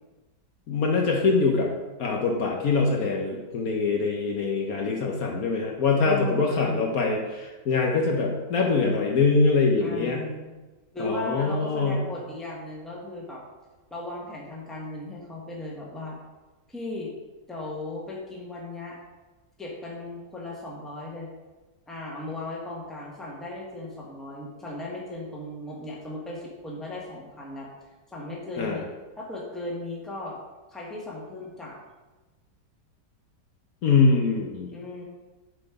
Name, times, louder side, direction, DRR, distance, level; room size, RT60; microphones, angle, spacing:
voice 1, 0.7-1.7 2.0-10.2 11.0-12.0 28.6-28.8 33.8-34.7, left 4 dB, 60° left, 0 dB, 1.2 m, -23 dB
voice 2, 6.0-6.9 9.8-10.5 10.9-13.4 13.9-16.2 16.7-17.1 17.5-19.0 19.6-21.3 21.9-27.7 28.1-28.8 29.2-30.4 30.7-31.8 34.7-35.0, left 2 dB, ahead, -3 dB, 1.1 m, -36 dB
7.6 x 4.2 x 4.9 m, 1.2 s
omnidirectional pair, 1.9 m